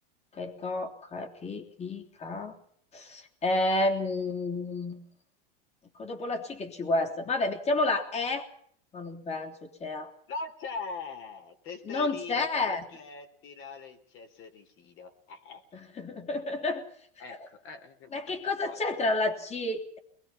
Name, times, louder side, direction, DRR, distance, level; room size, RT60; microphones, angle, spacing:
voice 1, 0.3-2.5 2.9-5.0 6.0-8.5 8.9-10.1 11.8-12.9 15.7-16.8 18.1-20.0, left 2 dB, 20° left, 4 dB, 3.4 m, -30 dB
voice 2, 10.3-15.6 17.2-18.2 18.6-18.8, left 4 dB, 45° left, 6 dB, 4.0 m, -42 dB
23.0 x 21.5 x 5.8 m, 0.63 s
supercardioid pair, 130°, 29 cm